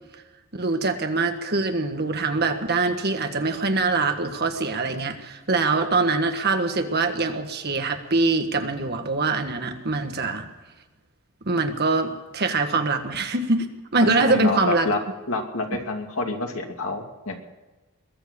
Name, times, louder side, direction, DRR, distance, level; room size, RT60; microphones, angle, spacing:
voice 1, 0.5-10.5 11.4-14.9, right 3 dB, 50° right, 6 dB, 1.5 m, -23 dB
voice 2, 14.0-15.0 15.3-17.4, left 2 dB, 70° left, 2 dB, 2.6 m, -28 dB
21.5 x 7.5 x 8.6 m, 1.2 s
head